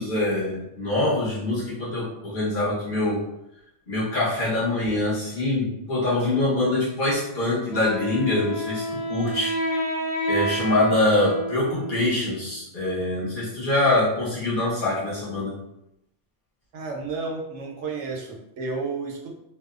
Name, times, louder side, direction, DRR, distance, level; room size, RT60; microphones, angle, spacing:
voice 1, 0.0-3.2 3.9-9.8 10.3-15.5, left 2 dB, 50° left, -9 dB, 1.1 m, -24 dB
Wind instrument woodwind instrument, 7.7-12.5, equal, 70° left, 0.8 m, -29 dB
voice 2, 16.7-19.3, right 4 dB, 85° right, -1 dB, 0.9 m, -32 dB
2.7 x 2.1 x 2.3 m, 0.85 s
omnidirectional pair, 1.2 m